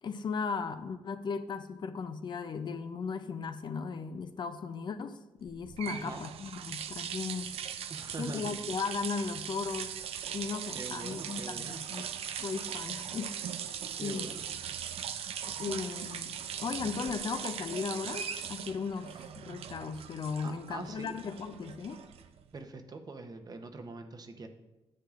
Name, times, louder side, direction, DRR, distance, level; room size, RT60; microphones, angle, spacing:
voice 1, 0.0-7.5 8.2-10.0 10.3-12.1 12.4-13.3 14.0-14.3 15.5-22.0, left 5 dB, 50° left, 10 dB, 0.5 m, -37 dB
sound 1, 5.5-22.5, right 8 dB, 80° right, 0.4 m, -40 dB
voice 2, 5.9-6.2 7.9-8.6 10.7-11.8 14.0-14.4 20.4-21.1 22.5-24.5, right 3 dB, 40° right, 6 dB, 0.8 m, -43 dB
10.0 x 7.5 x 2.5 m, 1.1 s
cardioid pair, 95°, 10 cm